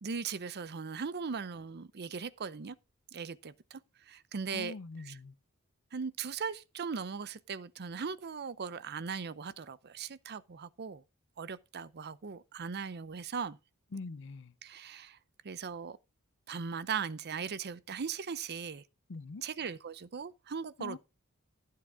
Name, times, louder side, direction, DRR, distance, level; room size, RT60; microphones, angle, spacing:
voice 1, 0.0-2.8 3.1-4.7 5.1-5.2 5.9-11.0 11.4-13.6 14.6-15.2 15.4-16.0 16.5-18.8 19.4-21.0, right 6 dB, 50° right, 0.6 m, -39 dB
voice 2, 4.5-5.3 13.9-14.5 19.1-19.4 20.8-21.0, left 3 dB, 60° left, 0.6 m, -43 dB
15.0 x 7.6 x 3.6 m
head